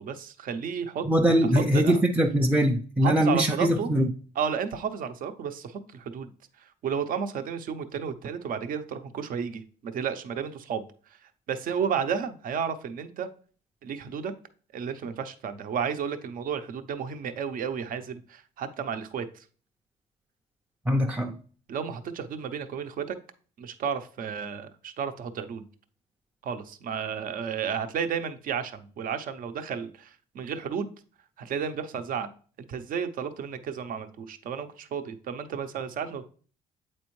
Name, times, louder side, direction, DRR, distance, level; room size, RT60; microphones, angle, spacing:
voice 1, 0.0-1.0 1.5-2.0 3.0-3.9 4.4-6.3 6.6-10.8 11.5-13.3 13.8-14.3 14.7-19.4 21.7-23.2 23.6-25.6 26.4-30.9 31.4-32.3 32.7-36.2, right 7 dB, 55° right, 9 dB, 0.7 m, -32 dB
voice 2, 1.0-4.1 20.9-21.3, equal, 10° right, 3 dB, 0.5 m, -22 dB
7.9 x 4.3 x 3.1 m, 0.42 s
cardioid pair, 110°, 17 cm